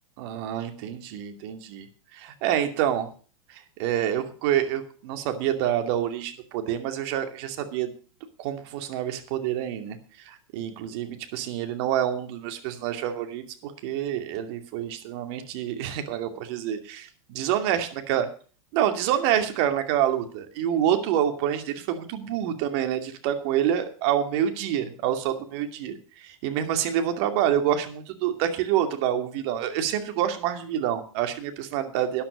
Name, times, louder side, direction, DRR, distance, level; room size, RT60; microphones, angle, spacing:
voice 1, 0.2-1.9 2.1-3.1 3.5-7.9 8.4-10.0 10.3-18.2 18.7-32.2, right 10 dB, 50° right, 7 dB, 2.5 m, -27 dB
13.0 x 10.0 x 5.2 m, 0.40 s
figure-of-eight pair, 95°, 17 cm